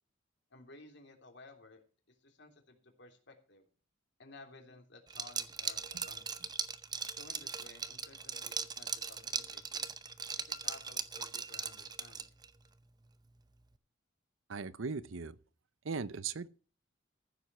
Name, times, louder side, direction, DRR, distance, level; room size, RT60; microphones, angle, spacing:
voice 1, 0.5-1.8 2.2-3.6 4.2-6.5 7.2-9.9 10.4-12.3, left 2 dB, 60° left, 3.2 m, -56 dB
Liquid, 5.1-12.5, right 6 dB, 20° right, 0.7 m, -39 dB
voice 2, 14.5-15.4 15.8-16.5, right 5 dB, 80° right, 0.7 m, -38 dB
14.5 x 7.9 x 5.6 m
head